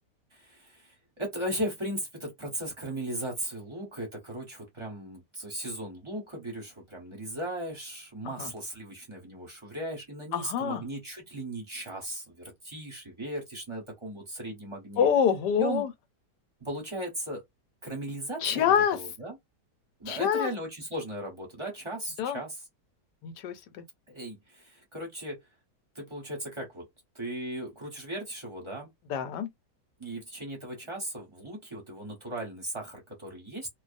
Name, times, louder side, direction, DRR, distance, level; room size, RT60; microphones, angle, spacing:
voice 1, 0.3-15.1 15.6-15.8 16.6-17.4 17.8-19.4 20.0-22.7 24.1-25.4 25.9-26.9 27.1-28.9 30.0-33.7, right 1 dB, 25° right, 0.7 m, -37 dB
voice 2, 10.3-10.8 15.0-15.9 18.4-19.0 20.1-20.5 22.2-22.4 23.2-23.8 29.1-29.5, left 8 dB, 90° left, 1.3 m, -26 dB
2.6 x 2.3 x 2.5 m
omnidirectional pair, 1.8 m